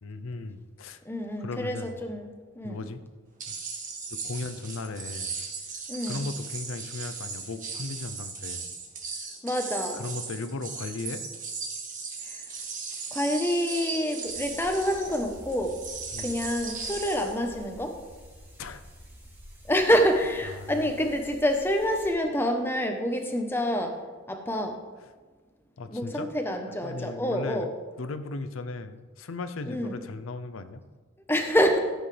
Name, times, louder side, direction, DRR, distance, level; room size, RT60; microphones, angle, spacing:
voice 1, 0.0-1.0 1.4-2.0 2.6-3.0 3.5-3.6 4.1-5.3 6.1-8.7 9.9-11.2 16.1-16.4 18.6-18.8 20.5-20.9 25.8-26.3 26.8-27.7 28.0-30.8, left 3 dB, 80° left, 11 dB, 0.6 m, -36 dB
voice 2, 1.0-2.8 5.9-6.2 9.4-10.0 12.2-12.4 13.1-15.7 16.2-18.0 19.7-23.9 24.3-24.7 25.9-27.7 29.7-30.0 31.3-31.8, equal, 10° left, 4 dB, 0.9 m, -27 dB
sound 1, 3.4-17.4, right 5 dB, 40° right, 1.6 m, -37 dB
sound 2, 14.2-22.1, equal, 10° right, 2.0 m, -49 dB
13.5 x 8.0 x 3.4 m, 1.4 s
head